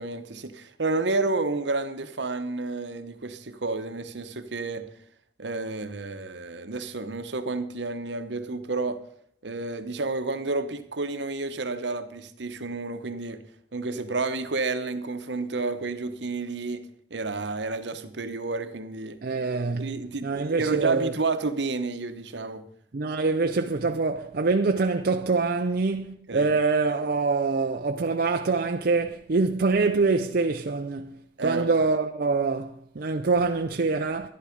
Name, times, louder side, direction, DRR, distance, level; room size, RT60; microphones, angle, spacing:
voice 1, 0.0-4.9 5.4-9.0 9.4-13.4 13.7-19.2 19.8-22.6 26.3-26.5 31.4-31.7, right 3 dB, 75° right, 1.0 m, -30 dB
voice 2, 19.2-21.1 22.9-34.3, right 3 dB, 55° right, 0.6 m, -25 dB
11.5 x 11.5 x 5.2 m
head